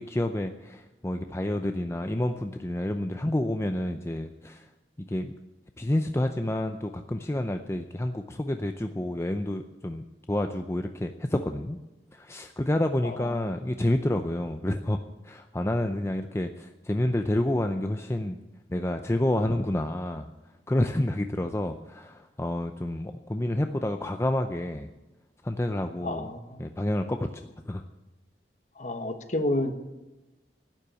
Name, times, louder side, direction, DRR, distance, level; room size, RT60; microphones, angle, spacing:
voice 1, 0.0-4.7 5.0-5.3 5.8-11.8 12.1-15.0 15.2-18.4 18.7-20.2 20.7-24.9 25.4-26.3 26.6-27.2 27.7-27.8, left 1 dB, 15° left, 6 dB, 0.5 m, -29 dB
voice 2, 13.0-13.5 26.0-26.7 28.8-29.7, left 1 dB, 45° left, 7 dB, 1.3 m, -30 dB
12.0 x 9.8 x 8.9 m, 1.1 s
head